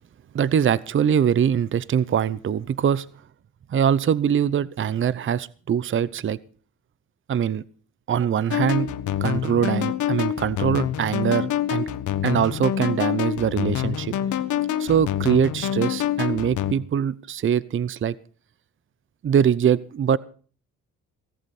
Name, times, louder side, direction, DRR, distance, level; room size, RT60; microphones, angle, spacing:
voice 1, 0.3-3.1 3.7-6.4 7.3-7.6 8.1-8.9 9.2-11.9 12.2-14.1 14.8-18.1 19.2-20.2, right 8 dB, 40° right, 0.7 m, -22 dB
sound 1, 8.5-16.7, left 11 dB, 75° left, 1.4 m, -26 dB
17.5 x 15.0 x 4.3 m
cardioid pair, 90°, 30 cm